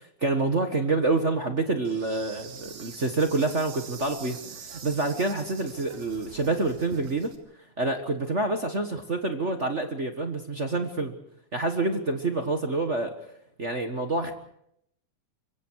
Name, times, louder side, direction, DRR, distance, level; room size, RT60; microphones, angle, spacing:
voice 1, 0.2-4.4 4.7-7.3 7.8-11.1 11.5-13.1 13.6-14.3, right 3 dB, 35° right, 6 dB, 1.1 m, -27 dB
Insect, 1.8-7.4, right 7 dB, 90° right, 3.6 m, -45 dB
26.5 x 23.5 x 4.7 m, 0.71 s
omnidirectional pair, 3.4 m